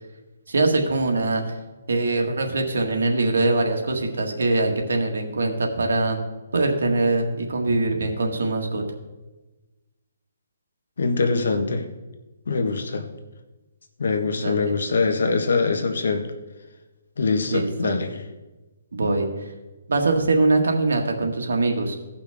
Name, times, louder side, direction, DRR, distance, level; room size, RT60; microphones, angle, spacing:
voice 1, 0.5-1.5 1.9-6.3 6.5-8.8 14.4-14.7 17.5-18.0 18.9-19.5 19.9-22.0, right 2 dB, 85° right, 3 dB, 1.6 m, -23 dB
voice 2, 11.0-11.9 12.5-13.1 14.0-16.3 17.2-18.1, left 4 dB, 75° left, 6 dB, 1.3 m, -23 dB
16.5 x 5.8 x 3.5 m, 1.1 s
hypercardioid pair, 170°, 0 cm